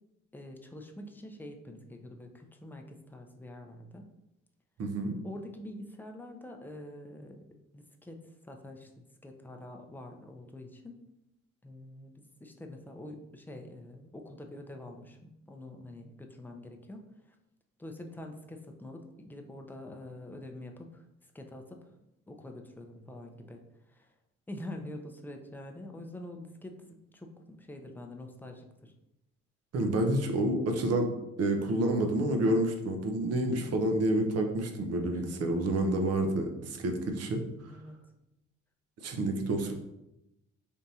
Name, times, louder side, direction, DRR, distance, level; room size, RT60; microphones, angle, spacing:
voice 1, 0.3-4.1 5.2-7.4 7.7-11.0 11.6-17.1 17.8-21.0 21.3-21.9 22.3-23.6 23.9-24.1 24.5-28.9 33.5-33.8 35.1-35.8 37.7-38.0, left 1 dB, 5° left, 3 dB, 0.5 m, -46 dB
voice 2, 4.8-5.2 29.7-31.1 31.4-37.4 39.0-39.7, right 1 dB, 55° right, 4 dB, 0.7 m, -28 dB
3.5 x 2.6 x 4.2 m, 0.89 s
cardioid pair, 90°, 30 cm